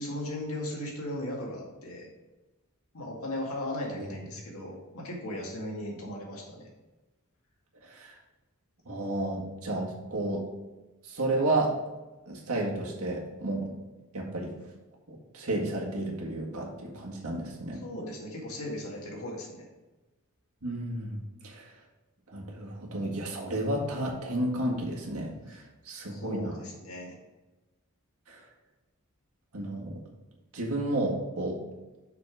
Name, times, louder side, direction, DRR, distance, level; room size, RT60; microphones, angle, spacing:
voice 1, 0.0-2.1 2.9-6.6 17.8-19.5 26.1-27.1, left 1 dB, 75° left, -2 dB, 2.0 m, -37 dB
voice 2, 7.8-8.1 8.8-10.4 11.0-11.7 12.2-13.7 14.1-14.5 15.1-17.8 20.6-21.7 22.3-26.6 28.3-28.4 29.5-29.9 30.5-31.6, right 1 dB, 85° right, -2 dB, 1.8 m, -32 dB
6.0 x 5.7 x 4.8 m, 1.1 s
head